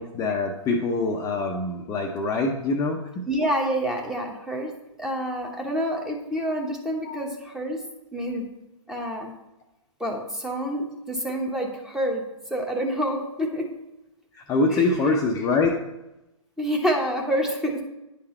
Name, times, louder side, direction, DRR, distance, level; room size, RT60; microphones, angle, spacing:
voice 1, 0.0-3.2 7.0-7.2 14.3-15.8, left 3 dB, 20° left, 0 dB, 0.6 m, -24 dB
voice 2, 3.3-4.7 5.0-7.8 8.1-8.5 8.9-9.3 10.0-12.2 12.5-13.7 14.7-14.8 16.6-17.8, equal, 5° right, 1 dB, 1.0 m, -27 dB
9.9 x 3.8 x 4.3 m, 0.94 s
hypercardioid pair, 125°, 16 cm